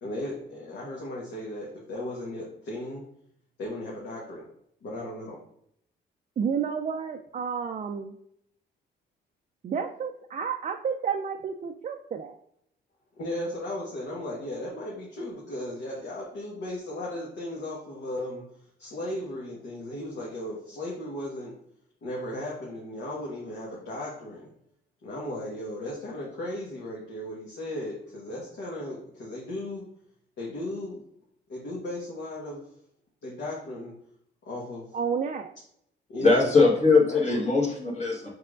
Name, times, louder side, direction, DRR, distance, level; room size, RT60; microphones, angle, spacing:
voice 1, 0.0-3.0 3.6-4.4 4.8-5.4 13.2-18.4 18.8-21.5 22.0-24.5 25.0-29.8 30.4-31.0 31.5-32.6 33.2-33.9 34.4-34.9 36.1-36.6 37.1-37.4, left 1 dB, 65° left, -5 dB, 1.3 m, -36 dB
voice 2, 6.4-8.2 9.6-12.4 34.9-35.5, right 6 dB, 40° right, 4 dB, 0.4 m, -30 dB
voice 3, 36.2-38.3, left 3 dB, 35° left, -2 dB, 1.3 m, -21 dB
4.9 x 4.4 x 2.4 m, 0.72 s
cardioid pair, 90°, 20 cm